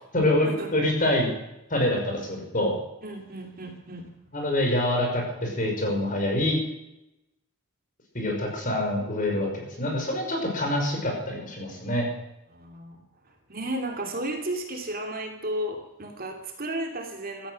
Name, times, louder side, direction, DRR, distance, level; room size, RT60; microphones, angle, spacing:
voice 1, 0.1-1.3 1.7-2.8 4.3-6.6 8.1-12.1, left 1 dB, 35° left, 1 dB, 5.7 m, -26 dB
voice 2, 3.0-4.0 12.5-13.0 13.5-17.5, right 1 dB, 40° right, 3 dB, 2.7 m, -33 dB
16.5 x 13.0 x 6.5 m, 0.90 s
head